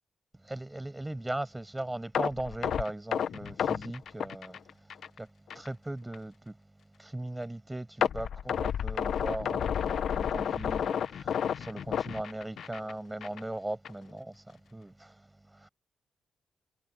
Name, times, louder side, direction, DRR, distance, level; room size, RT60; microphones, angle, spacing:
voice 1, 0.4-6.6 7.0-15.7, right 1 dB, 15° right, 7.5 m, -39 dB
sound 1, 2.1-5.2 5.5-5.7 6.1-6.2 8.0-12.9 13.2-13.4 13.8-13.9, left 8 dB, 75° left, 0.8 m, -31 dB
cardioid pair, 75°, 0 cm